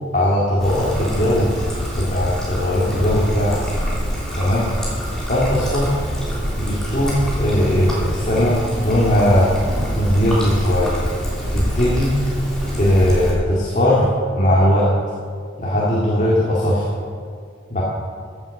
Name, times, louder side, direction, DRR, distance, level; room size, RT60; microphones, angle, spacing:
voice 1, 0.1-1.6 1.9-3.6 4.4-4.7 5.3-6.0 6.6-9.5 10.0-10.9 11.5-12.1 12.8-14.1 14.4-14.9 15.6-16.9 17.7-17.8, equal, 40° left, -5 dB, 2.1 m, -18 dB
Trickle dribble, 0.6-13.3, equal, 5° left, 3.1 m, -25 dB
15.0 x 8.0 x 6.5 m, 2.2 s
head